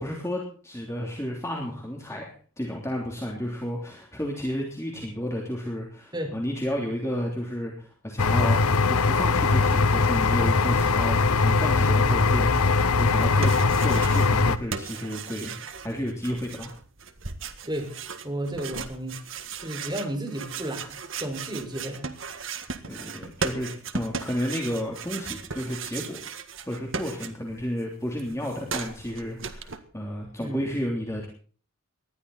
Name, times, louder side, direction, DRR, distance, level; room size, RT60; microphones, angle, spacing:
voice 1, 0.0-8.6 8.9-15.6 15.8-16.7 22.8-23.7 23.9-26.2 26.7-31.3, equal, 15° left, 0 dB, 3.2 m, -32 dB
sound 1, 8.2-14.6, left 4 dB, 85° left, 1.0 m, -21 dB
sound 2, 13.1-14.4 14.7-27.7 27.9-29.8, right 5 dB, 60° right, 1.8 m, -36 dB
voice 2, 17.7-18.0 18.2-19.2 19.6-22.1 30.4-30.7, right 1 dB, 20° right, 2 dB, 4.9 m, -33 dB
19.5 x 13.0 x 4.1 m, 0.43 s
head